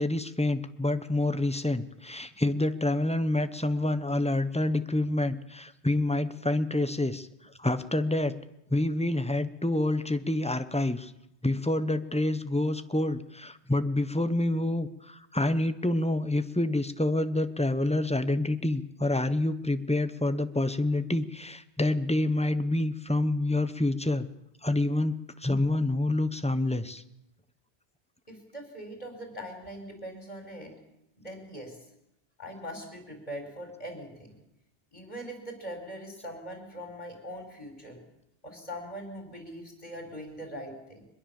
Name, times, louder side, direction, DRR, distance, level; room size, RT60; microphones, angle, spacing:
voice 1, 0.0-7.3 7.6-8.3 8.7-11.1 11.4-24.3 24.6-27.0, left 1 dB, 5° left, 11 dB, 1.0 m, -27 dB
voice 2, 28.3-30.7 31.2-31.8 32.4-34.3 34.9-38.0 38.4-41.1, equal, 35° left, 3 dB, 5.0 m, -41 dB
23.0 x 21.0 x 7.2 m, 0.84 s
omnidirectional pair, 1.1 m